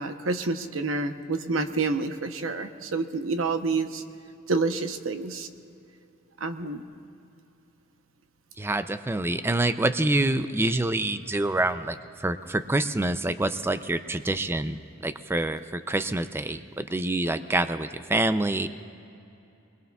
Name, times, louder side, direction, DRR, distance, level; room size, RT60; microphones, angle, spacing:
voice 1, 0.0-4.0 4.5-5.5 6.4-6.8, right 3 dB, 85° right, 8 dB, 0.9 m, -28 dB
voice 2, 8.6-14.8 15.0-18.7, right 2 dB, 10° right, 11 dB, 0.4 m, -26 dB
24.5 x 21.5 x 2.4 m, 2.7 s
head